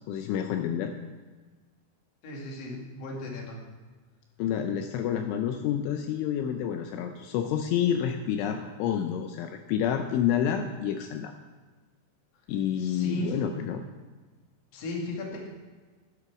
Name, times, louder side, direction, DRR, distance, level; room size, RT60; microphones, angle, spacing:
voice 1, 0.1-0.9 4.4-11.3 12.5-13.8, left 9 dB, 80° left, 6 dB, 3.0 m, -29 dB
voice 2, 2.2-3.6 12.8-13.4 14.7-15.5, left 1 dB, 45° left, -1 dB, 2.4 m, -36 dB
11.0 x 9.9 x 6.0 m, 1.4 s
omnidirectional pair, 5.7 m